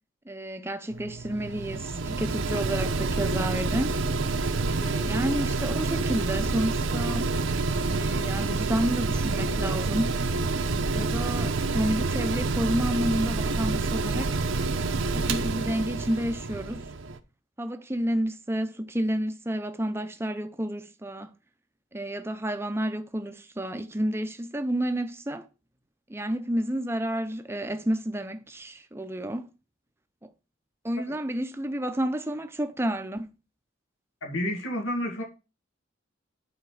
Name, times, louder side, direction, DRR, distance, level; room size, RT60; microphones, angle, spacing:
voice 1, 0.3-4.0 4.7-7.3 7.9-10.2 10.9-14.4 15.1-16.9 17.6-21.3 21.9-25.5 26.1-29.5 30.2-30.3 30.8-33.3, right 1 dB, 10° right, 0.6 m, -30 dB
Mechanical fan, 0.9-17.2, right 3 dB, 75° right, 0.8 m, -28 dB
voice 2, 34.2-35.2, equal, 90° left, 2.1 m, -30 dB
10.5 x 4.3 x 4.8 m
head